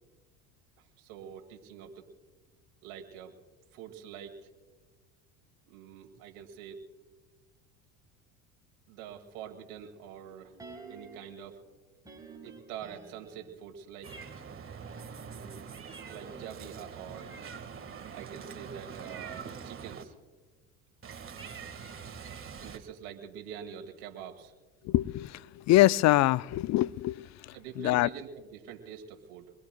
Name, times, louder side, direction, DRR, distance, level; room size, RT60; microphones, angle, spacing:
voice 1, 0.8-2.0 2.8-3.4 3.7-4.5 5.7-6.8 8.9-11.6 12.4-14.1 15.2-15.6 16.1-17.6 18.1-20.2 22.6-24.5 27.5-29.5, right 8 dB, 75° right, 2.0 m, -45 dB
sound 1, 10.6-11.4 12.0-13.7 14.7-18.9 19.2-19.3, right 3 dB, 10° right, 3.5 m, -51 dB
Meow, 14.0-20.0 21.0-22.8, right 6 dB, 30° right, 1.6 m, -44 dB
voice 2, 24.9-25.3 25.7-27.2 27.8-28.1, left 16 dB, 40° left, 0.4 m, -23 dB
25.0 x 22.0 x 2.2 m
hypercardioid pair, 85°, 42 cm